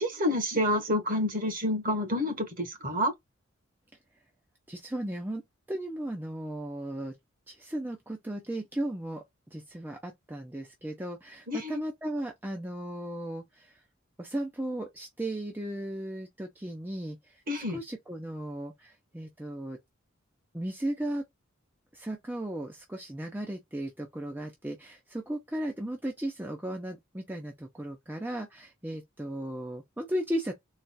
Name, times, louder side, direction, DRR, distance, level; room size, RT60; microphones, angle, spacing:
voice 1, 0.0-3.1 11.5-11.8 17.5-17.8, left 1 dB, 45° right, 1.4 m, -28 dB
voice 2, 4.7-5.4 5.7-7.1 7.5-13.7 14.2-17.4 17.7-19.8 20.5-21.2 21.9-30.5, right 1 dB, 10° right, 0.6 m, -36 dB
4.0 x 2.4 x 2.2 m
head